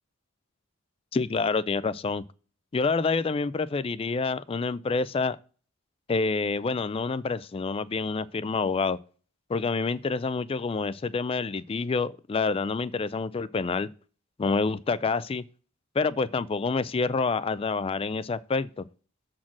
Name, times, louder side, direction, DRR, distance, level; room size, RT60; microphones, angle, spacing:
voice 1, 1.1-2.2 2.7-5.4 6.1-9.0 9.5-13.9 14.4-15.4 16.0-18.9, left 4 dB, 25° left, 0.3 m, -27 dB
7.4 x 4.3 x 6.0 m
head